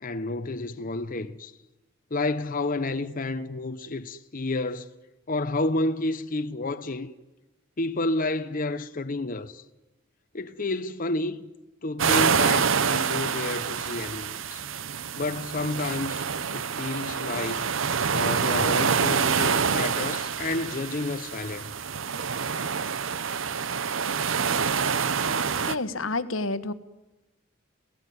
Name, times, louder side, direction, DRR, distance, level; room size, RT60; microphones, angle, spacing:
voice 1, 0.0-1.5 2.1-4.9 5.3-7.1 7.8-9.6 10.3-11.5 11.8-14.6 15.2-16.2 16.5-17.7 18.1-21.7, left 2 dB, 45° left, 0.9 m, -30 dB
sound 1, 12.0-25.7, right 6 dB, 75° right, 0.9 m, -26 dB
voice 2, 25.7-26.7, left 2 dB, 85° left, 1.3 m, -29 dB
29.0 x 16.5 x 9.5 m
head